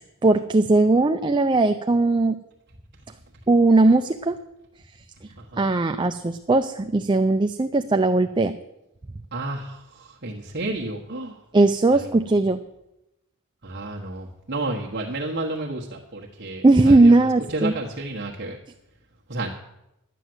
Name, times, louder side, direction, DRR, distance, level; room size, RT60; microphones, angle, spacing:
voice 1, 0.2-2.4 3.5-4.4 5.6-8.5 11.5-12.6 16.6-17.7, right 2 dB, 20° right, 7 dB, 0.5 m, -18 dB
voice 2, 5.4-5.7 9.3-11.4 13.6-17.1 17.5-18.6 19.3-19.5, right 2 dB, 50° right, -2 dB, 1.3 m, -31 dB
12.0 x 9.2 x 7.8 m, 0.89 s
head